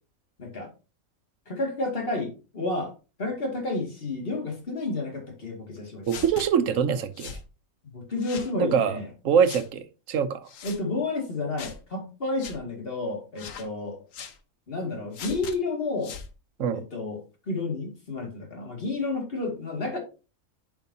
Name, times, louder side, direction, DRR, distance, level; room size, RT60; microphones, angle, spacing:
voice 1, 1.5-2.9 3.2-6.0 7.9-9.0 10.6-14.0 14.7-16.2 16.7-20.0, left 2 dB, 45° left, 2.5 m, -31 dB
sound 1, 6.1-6.5 7.2-7.4 8.2-8.5 9.4-9.7 10.5-10.8 11.6-11.8 12.4-12.6 13.4-13.7 14.1-14.4 15.1-15.6 16.0-16.3, left 6 dB, 75° left, 1.3 m, -39 dB
voice 2, 6.1-7.4 8.5-9.0 9.2-10.5 16.6-16.8, right 7 dB, 75° right, 1.2 m, -24 dB
10.5 x 5.7 x 2.8 m
omnidirectional pair, 1.4 m